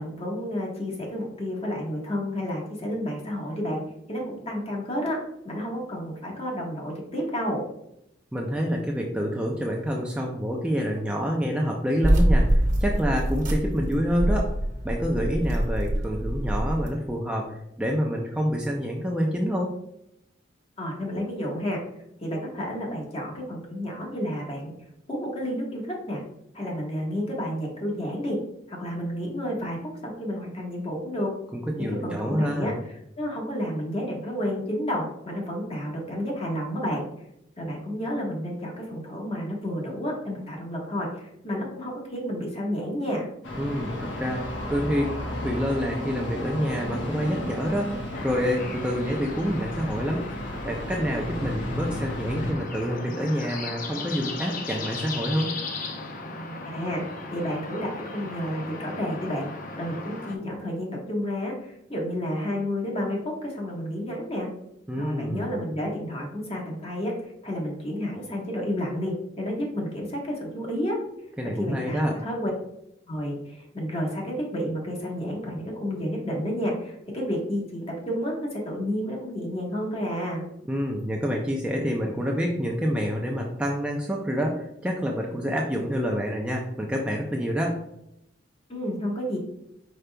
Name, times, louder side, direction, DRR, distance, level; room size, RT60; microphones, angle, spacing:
voice 1, 0.0-3.8 4.1-5.2 5.4-7.6 20.8-21.8 22.2-24.7 25.1-26.2 26.5-28.4 28.7-31.3 31.8-37.0 37.6-43.3 56.6-57.0 57.3-59.5 59.8-64.5 65.0-71.0 71.6-72.5 73.1-80.4 88.7-89.4, equal, 30° left, -2 dB, 1.2 m, -31 dB
voice 2, 8.3-14.5 14.8-19.8 31.5-32.7 43.6-50.3 50.6-55.6 64.9-65.5 71.4-72.2 80.7-87.8, equal, 5° right, -1 dB, 0.4 m, -27 dB
sound 1, 12.0-16.9, right 1 dB, 45° right, 1.0 m, -24 dB
sound 2, 43.4-52.5, left 1 dB, 75° left, 1.1 m, -34 dB
sound 3, 48.1-60.4, left 3 dB, 45° left, 0.7 m, -37 dB
5.1 x 4.5 x 2.2 m, 0.79 s
head